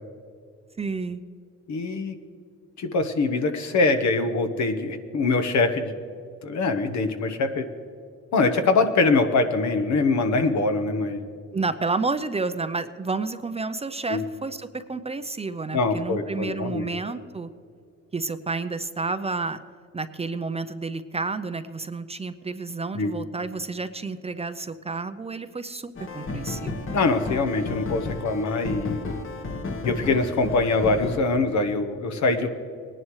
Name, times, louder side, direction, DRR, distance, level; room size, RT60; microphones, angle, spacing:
voice 1, 0.8-1.2 11.5-17.5 18.1-19.6 19.9-26.9, right 3 dB, 20° right, 11 dB, 0.5 m, -30 dB
voice 2, 1.7-2.1 2.8-5.9 6.4-7.6 8.3-11.2 14.1-14.2 15.7-16.9 22.9-23.1 26.9-29.0 29.8-32.5, left 3 dB, 65° left, 7 dB, 1.2 m, -23 dB
sound 1, 26.0-31.2, left 3 dB, 40° left, 1.3 m, -33 dB
19.5 x 10.5 x 3.2 m, 2.3 s
cardioid pair, 90°, 30 cm